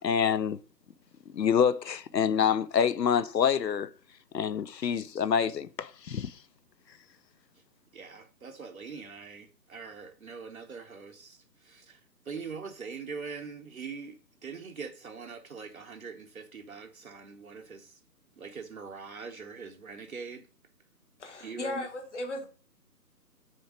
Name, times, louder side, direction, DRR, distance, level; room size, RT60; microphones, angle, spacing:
voice 1, 0.0-0.6 1.3-3.9 4.3-6.4, left 7 dB, 80° left, 0.7 m, -26 dB
voice 2, 7.9-12.0 12.3-18.0 18.4-20.5 21.4-21.9, right 5 dB, 60° right, 0.8 m, -42 dB
voice 3, 21.2-22.5, left 2 dB, 45° left, 1.8 m, -36 dB
6.3 x 4.5 x 4.9 m
figure-of-eight pair, 150°, 49 cm